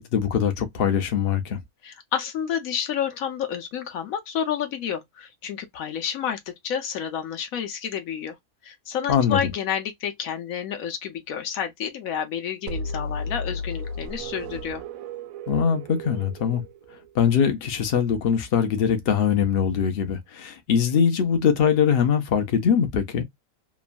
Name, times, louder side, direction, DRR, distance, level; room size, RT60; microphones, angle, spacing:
voice 1, 0.0-1.6 9.1-9.4 15.5-16.6 17.1-23.2, left 7 dB, 55° left, 0.7 m, -22 dB
voice 2, 1.8-8.3 8.6-14.8, left 8 dB, 70° left, 1.0 m, -30 dB
sound 1, 12.7-17.4, equal, 70° right, 0.9 m, -34 dB
3.0 x 2.3 x 2.4 m
omnidirectional pair, 1.6 m